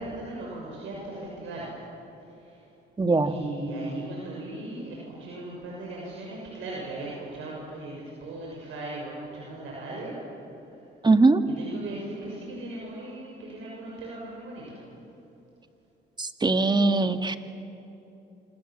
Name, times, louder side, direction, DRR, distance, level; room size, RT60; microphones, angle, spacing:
voice 1, 0.0-1.7 2.4-2.6 3.2-10.2 11.5-14.8, right 2 dB, 80° right, -4 dB, 6.6 m, -38 dB
voice 2, 3.0-3.3 11.0-11.4 16.2-17.4, right 3 dB, 20° right, 8 dB, 1.7 m, -21 dB
28.0 x 26.0 x 7.6 m, 2.9 s
cardioid pair, 90°, 20 cm